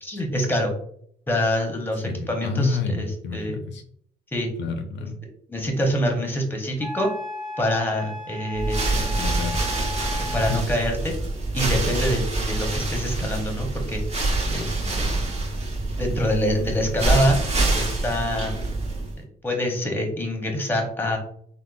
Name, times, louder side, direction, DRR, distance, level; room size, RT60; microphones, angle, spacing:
voice 1, 0.0-0.7 1.3-3.6 4.3-4.5 5.5-7.1 7.6-9.2 10.3-11.1 11.5-14.0 14.5-15.2 16.0-17.4 17.7-18.7 19.4-21.2, equal, 10° left, 3 dB, 0.7 m, -25 dB
voice 2, 2.1-3.8 4.6-5.2 9.1-9.7 10.5-10.6, left 5 dB, 65° left, 5 dB, 0.4 m, -29 dB
Wind instrument woodwind instrument, 6.8-10.7, left 1 dB, 60° right, 0.8 m, -35 dB
sound 1, 8.5-19.2, right 2 dB, 35° right, 1.1 m, -26 dB
3.5 x 2.0 x 2.3 m, 0.63 s
cardioid pair, 90°, 20 cm